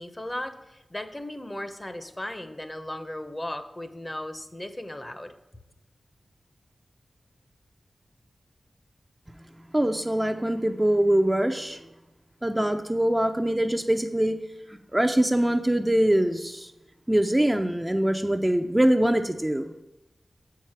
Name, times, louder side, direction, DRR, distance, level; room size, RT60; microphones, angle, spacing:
voice 1, 0.0-5.3, left 1 dB, 25° left, 9 dB, 0.8 m, -36 dB
voice 2, 9.7-11.8 12.4-14.4 14.7-16.7 17.1-19.7, right 1 dB, 15° right, 5 dB, 0.5 m, -23 dB
7.1 x 4.8 x 5.8 m, 1.0 s
cardioid pair, 45°, 0 cm